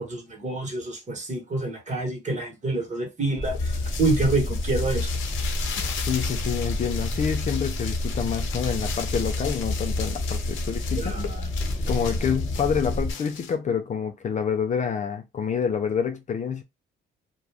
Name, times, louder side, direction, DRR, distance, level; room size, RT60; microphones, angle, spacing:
voice 1, 0.0-5.1 11.0-11.5, right 2 dB, 35° right, 1.2 m, -27 dB
sound 1, 3.4-13.5, left 6 dB, 75° left, 0.7 m, -37 dB
sound 2, 3.4-13.1, left 2 dB, 10° left, 0.9 m, -29 dB
voice 2, 6.1-11.1 11.9-16.6, left 7 dB, 40° left, 0.4 m, -27 dB
2.4 x 2.2 x 3.3 m
cardioid pair, 90°, 20 cm